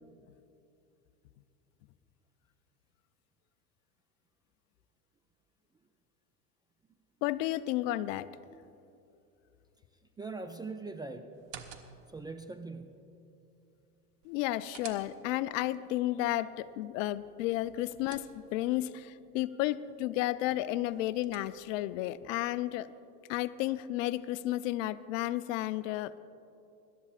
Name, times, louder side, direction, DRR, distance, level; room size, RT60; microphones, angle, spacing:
voice 1, 7.2-8.3 14.2-22.9 23.3-26.2, left 15 dB, 60° left, 15 dB, 0.6 m, -32 dB
voice 2, 10.2-11.3 12.1-13.1, right 3 dB, 10° right, 6 dB, 0.3 m, -41 dB
sound 1, 11.3-12.2 14.2-15.5 17.5-18.7 20.7-21.8, right 8 dB, 55° right, 1.3 m, -52 dB
25.5 x 12.5 x 2.4 m, 2.7 s
hypercardioid pair, 85°, 45 cm